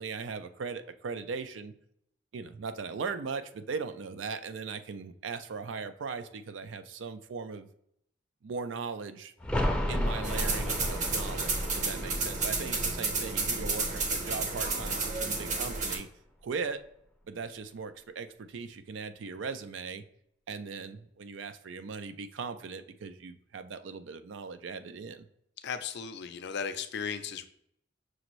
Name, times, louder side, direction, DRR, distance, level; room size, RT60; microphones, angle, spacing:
voice 1, 0.0-1.7 2.3-7.7 8.4-9.3 9.9-16.1 16.4-16.8 17.3-20.0 20.5-25.3, right 5 dB, 70° right, 10 dB, 0.4 m, -39 dB
sound 1, 9.4-15.0 15.3-15.4, left 1 dB, 5° left, 0.6 m, -34 dB
sound 2, 10.2-16.0, right 3 dB, 40° right, 0.8 m, -31 dB
voice 2, 25.6-27.5, left 6 dB, 65° left, 9 dB, 0.5 m, -36 dB
6.2 x 2.5 x 3.0 m, 0.72 s
head